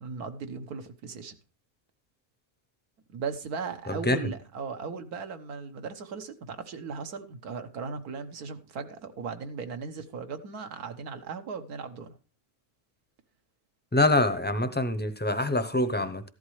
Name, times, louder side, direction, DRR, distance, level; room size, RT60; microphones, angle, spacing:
voice 1, 0.0-1.3 3.1-12.1, right 5 dB, 90° right, 1.7 m, -37 dB
voice 2, 3.9-4.3 13.9-16.2, left 2 dB, 15° left, 0.4 m, -25 dB
14.5 x 11.5 x 3.2 m
omnidirectional pair, 1.5 m